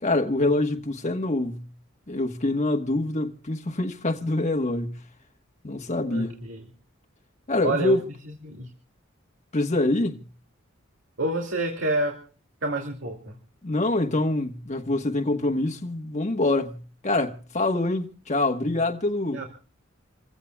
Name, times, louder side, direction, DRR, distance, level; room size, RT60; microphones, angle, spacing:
voice 1, 0.0-1.6 2.1-5.0 5.6-6.3 7.5-8.0 9.5-10.2 13.6-19.4, left 2 dB, 35° left, 1.2 m, -25 dB
voice 2, 6.1-6.7 7.6-7.9 8.4-8.7 11.2-12.2 12.6-13.4 19.3-19.4, right 2 dB, 65° right, 2.5 m, -28 dB
28.5 x 15.5 x 2.3 m
head